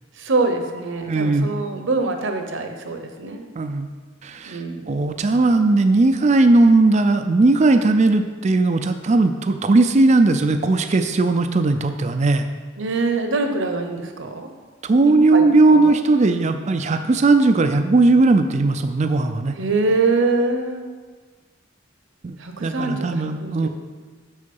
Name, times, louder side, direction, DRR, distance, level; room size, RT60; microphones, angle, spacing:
voice 1, 0.2-3.4 4.5-4.9 12.8-14.5 15.1-15.4 15.7-16.0 19.6-20.9 22.4-23.7, right 3 dB, 60° right, 5 dB, 0.8 m, -24 dB
voice 2, 1.0-1.5 3.6-3.9 4.2-4.6 4.9-12.5 14.8-19.6 22.2-22.4 22.6-23.7, right 3 dB, 35° right, 8 dB, 0.4 m, -17 dB
6.6 x 6.3 x 5.4 m, 1.5 s
head